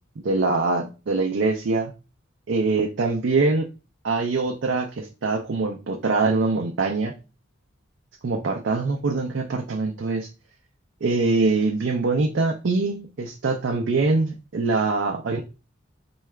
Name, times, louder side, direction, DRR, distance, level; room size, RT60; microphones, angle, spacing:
voice 1, 0.2-1.9 2.5-3.7 4.0-7.1 8.2-10.3 11.0-15.4, right 3 dB, 60° right, 2 dB, 0.4 m, -23 dB
4.6 x 2.3 x 3.2 m, 0.32 s
head